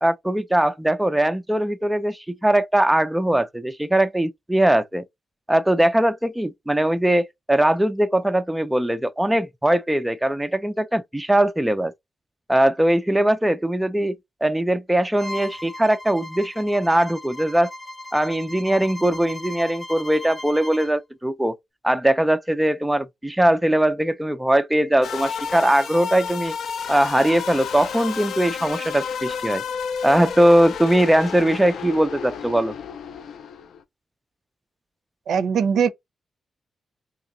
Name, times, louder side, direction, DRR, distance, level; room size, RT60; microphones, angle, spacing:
voice 1, 0.0-5.0 5.5-11.9 12.5-17.7 18.1-21.6 21.8-26.5 26.9-29.6 30.0-32.7, right 1 dB, 5° right, 0.3 m, -20 dB
Bowed string instrument, 15.2-20.9, left 1 dB, 10° left, 0.7 m, -38 dB
sound 1, 25.0-33.8, left 6 dB, 75° left, 0.5 m, -31 dB
voice 2, 35.3-35.9, right 7 dB, 90° right, 0.5 m, -20 dB
2.9 x 2.8 x 3.7 m
wide cardioid pair, 175°, 0 cm